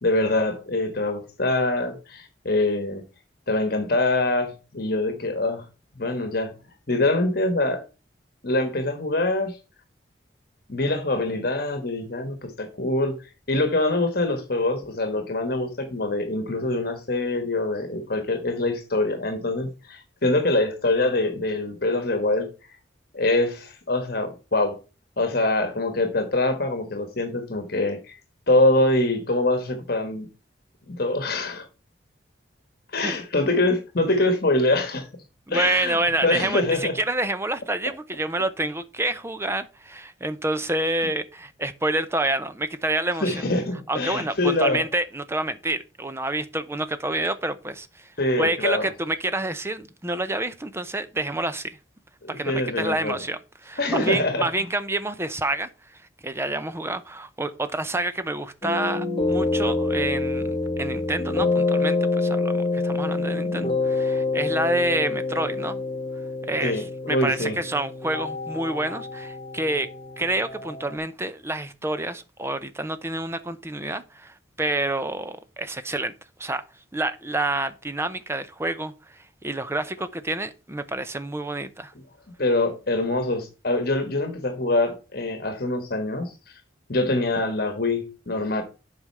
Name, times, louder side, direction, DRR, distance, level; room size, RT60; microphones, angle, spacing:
voice 1, 0.0-3.0 3.5-5.6 6.0-6.5 6.9-7.8 8.4-9.6 10.7-13.1 13.5-22.5 23.1-24.8 25.2-28.2 28.5-30.3 30.9-31.7 32.9-35.1 35.5-37.0 43.2-44.8 48.2-48.9 52.2-53.2 53.8-54.5 66.6-67.6 82.4-86.3 86.9-88.6, left 2 dB, 55° left, 1.3 m, -24 dB
voice 2, 35.5-43.4 43.9-51.8 52.3-65.8 66.4-69.9 70.2-76.1 76.4-76.6 76.9-81.9, right 2 dB, 15° right, 0.6 m, -28 dB
sound 1, 58.6-71.0, left 3 dB, 30° left, 1.0 m, -27 dB
7.8 x 5.0 x 5.4 m
head